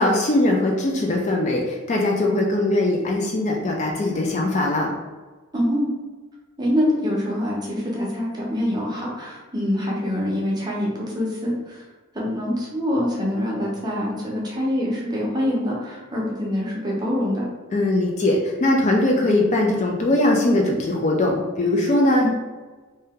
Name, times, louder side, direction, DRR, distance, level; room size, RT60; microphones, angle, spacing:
voice 1, 0.0-4.9 17.7-22.3, left 1 dB, 35° left, 0 dB, 0.3 m, -21 dB
voice 2, 5.5-5.9 6.6-11.8 12.1-17.5 22.2-22.3, left 1 dB, 20° right, -4 dB, 0.7 m, -25 dB
2.7 x 2.2 x 3.6 m, 1.3 s
head